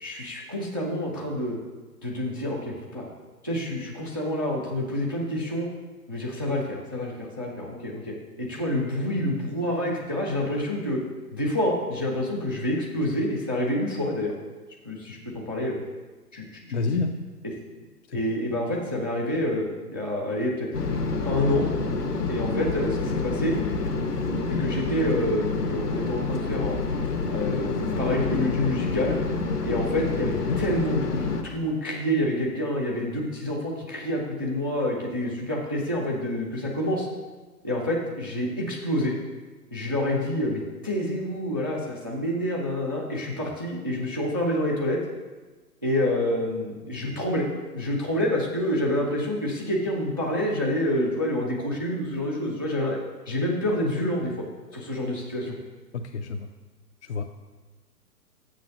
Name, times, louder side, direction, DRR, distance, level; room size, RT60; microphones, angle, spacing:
voice 1, 0.0-1.6 2.0-3.0 3.4-5.7 6.1-11.0 11.3-14.3 14.8-15.8 16.3-17.0 18.1-20.7 21.2-21.7 22.3-23.5 24.6-26.8 27.3-29.2 29.6-37.1 37.6-39.1 39.7-45.0 45.8-47.4 47.7-53.0 53.3-54.4 54.7-55.5, left 1 dB, 15° right, -2 dB, 0.4 m, -27 dB
voice 2, 16.7-17.2 18.1-18.2 30.5-30.6 55.9-56.5 57.1-57.2, left 4 dB, 50° left, 5 dB, 0.5 m, -28 dB
sound 1, 20.7-31.4, left 3 dB, 75° left, 1.2 m, -28 dB
7.3 x 6.2 x 5.4 m, 1.3 s
figure-of-eight pair, 120°, 47 cm